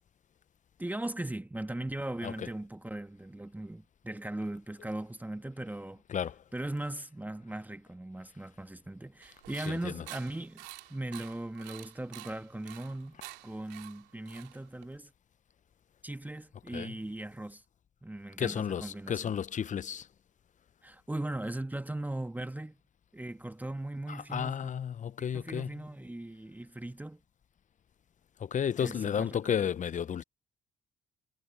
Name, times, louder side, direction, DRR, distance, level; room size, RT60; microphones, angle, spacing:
voice 1, 0.8-6.0 6.5-13.2 13.4-15.1 16.0-17.6 18.0-19.3 20.8-22.8 23.1-24.7 25.2-27.2 28.8-29.4, right 1 dB, 10° right, 1.7 m, -39 dB
voice 2, 6.1-6.4 9.7-10.0 16.7-17.0 18.4-20.1 24.1-25.8 28.4-30.2, left 8 dB, 45° left, 0.9 m, -33 dB
sound 1, 9.2-15.0, right 19 dB, 80° right, 2.9 m, -49 dB
hypercardioid pair, 55°, 18 cm